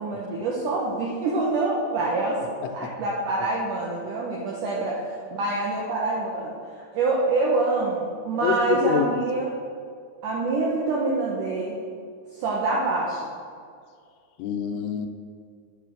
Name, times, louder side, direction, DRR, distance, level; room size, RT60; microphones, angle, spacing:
voice 1, 0.0-2.4 2.7-5.0 5.3-9.5 10.2-11.8 12.3-13.2, right 3 dB, 70° right, -3 dB, 2.0 m, -26 dB
voice 2, 8.4-9.3 14.4-15.1, left 7 dB, 85° left, 4 dB, 2.7 m, -26 dB
9.3 x 5.7 x 6.2 m, 2.2 s
omnidirectional pair, 4.7 m